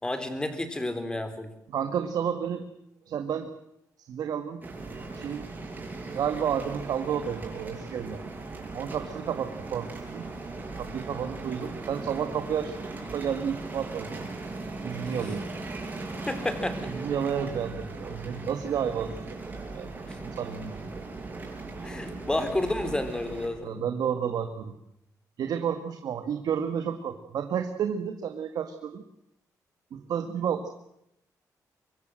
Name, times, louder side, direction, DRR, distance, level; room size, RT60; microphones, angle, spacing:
voice 1, 0.0-1.5 15.0-15.1 16.2-16.9 21.8-23.8, left 1 dB, 10° left, 9 dB, 3.8 m, -31 dB
voice 2, 1.7-2.7 3.1-3.5 4.0-4.6 5.1-5.5 6.1-8.2 8.7-10.3 10.8-12.7 13.1-14.3 14.8-15.5 16.9-19.1 19.5-19.9 20.2-20.9 23.6-24.8 25.4-29.0 29.9-30.7, right 8 dB, 75° right, 7 dB, 2.0 m, -31 dB
sound 1, 4.6-23.5, right 3 dB, 30° right, 7.9 m, -38 dB
25.5 x 22.0 x 7.8 m, 0.79 s
cardioid pair, 130°, 7 cm